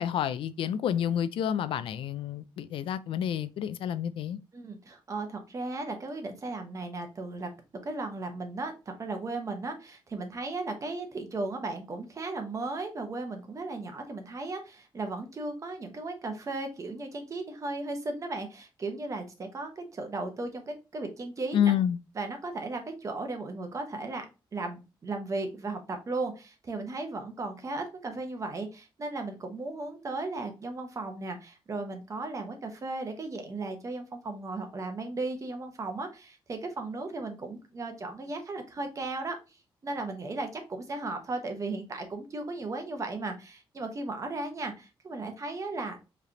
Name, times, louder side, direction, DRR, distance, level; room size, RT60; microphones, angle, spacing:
voice 1, 0.0-4.4 21.5-22.0, left 9 dB, 80° left, 0.4 m, -29 dB
voice 2, 4.5-7.5 7.8-21.7 22.2-39.4 39.8-46.0, right 2 dB, 35° right, 1.0 m, -36 dB
4.7 x 3.3 x 2.8 m
cardioid pair, 130°, 9 cm